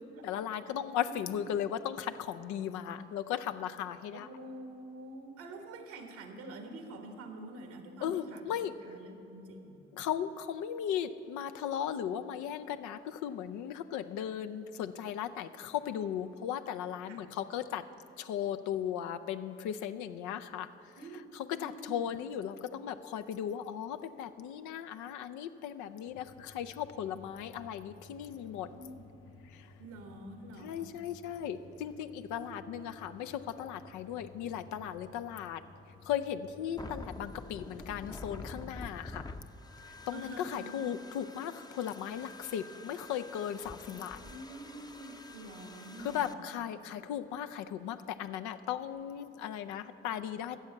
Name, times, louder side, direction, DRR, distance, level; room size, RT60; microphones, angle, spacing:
voice 1, 0.2-4.3 8.0-8.7 9.9-17.8 18.2-20.7 21.3-28.7 29.5-29.7 30.6-35.6 36.1-39.3 40.1-44.2 46.0-50.6, left 9 dB, 70° left, 10 dB, 0.6 m, -37 dB
voice 2, 1.0-1.6 4.1-8.6 8.8-9.8 17.1-17.3 20.9-22.1 28.6-29.1 29.8-31.0 32.3-32.9 40.1-40.9 43.9-46.4, right 2 dB, 75° right, 6 dB, 1.3 m, -47 dB
sound 1, 26.1-39.5, left 4 dB, 50° left, 0.9 m, -56 dB
sound 2, 36.8-46.3, left 2 dB, 15° left, 0.7 m, -47 dB
12.0 x 7.2 x 8.0 m, 3.0 s
hypercardioid pair, 40°, 30 cm